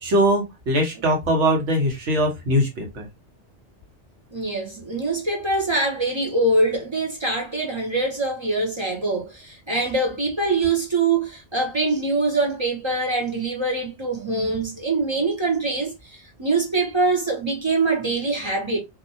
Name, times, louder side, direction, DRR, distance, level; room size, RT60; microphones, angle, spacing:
voice 1, 0.0-3.1, equal, 85° right, 1.3 m, -21 dB
voice 2, 4.3-18.8, right 3 dB, 45° right, 0.3 m, -24 dB
2.6 x 2.3 x 2.6 m
omnidirectional pair, 1.2 m